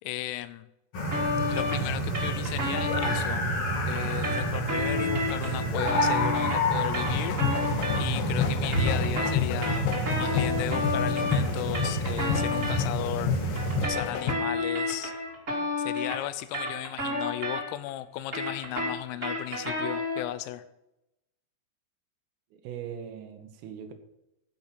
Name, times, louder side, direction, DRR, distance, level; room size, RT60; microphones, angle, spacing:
voice 1, 0.0-0.7 1.5-3.5 3.9-15.1 15.8-20.7, left 14 dB, 85° left, 14 dB, 3.4 m, -35 dB
sound 1, 0.9-13.8, right 1 dB, 50° left, 1.7 m, -29 dB
sound 2, 1.1-3.2 3.9-8.3 8.6-12.8 13.5-17.9 18.2-20.3, left 2 dB, 25° right, 1.8 m, -31 dB
sound 3, 7.0-14.3, left 8 dB, 70° left, 3.1 m, -31 dB
voice 2, 22.5-23.9, right 8 dB, 80° right, 7 dB, 3.7 m, -40 dB
15.5 x 6.0 x 5.9 m, 0.89 s
omnidirectional pair, 6.0 m